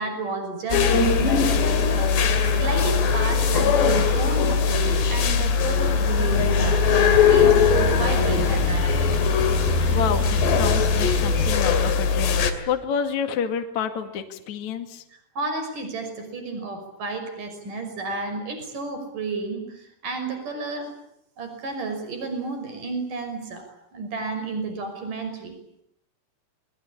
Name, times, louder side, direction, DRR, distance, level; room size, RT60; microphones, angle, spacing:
voice 1, 0.0-2.1 2.5-6.8 7.2-9.0 15.4-20.9 21.4-23.6 23.9-25.6, right 3 dB, 50° right, 6 dB, 7.2 m, -31 dB
sound 1, 0.7-12.5, left 6 dB, 90° left, 4.7 m, -20 dB
sound 2, 6.3-11.6, right 2 dB, 80° right, 8.0 m, -29 dB
voice 2, 9.9-15.0, left 7 dB, 50° left, 6 dB, 3.1 m, -29 dB
28.0 x 22.0 x 8.7 m, 0.75 s
omnidirectional pair, 4.7 m